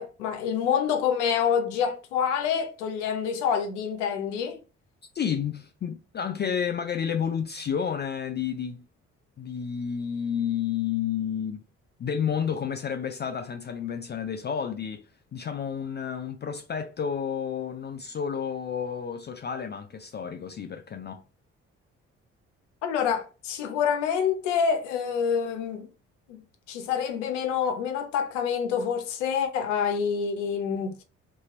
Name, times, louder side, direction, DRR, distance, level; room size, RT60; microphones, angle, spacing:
voice 1, 0.0-4.6 22.8-25.9 26.3-26.4 26.7-30.9, left 7 dB, 85° left, 0.5 m, -27 dB
voice 2, 5.1-8.8 9.4-11.6 12.0-21.2, left 7 dB, 30° left, 0.4 m, -31 dB
2.7 x 2.6 x 3.0 m
hypercardioid pair, 45°, 36 cm